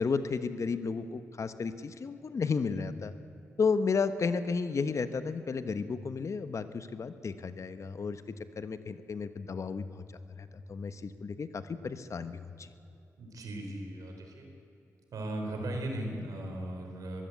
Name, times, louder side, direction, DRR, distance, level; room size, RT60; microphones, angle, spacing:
voice 1, 0.0-3.1 3.6-8.2 8.6-10.0 10.4-12.7, left 5 dB, 60° left, 11 dB, 1.3 m, -33 dB
voice 2, 13.2-14.5 15.1-17.3, right 1 dB, 85° right, 3 dB, 4.2 m, -37 dB
22.0 x 15.5 x 8.4 m, 2.8 s
cardioid pair, 65°, 6 cm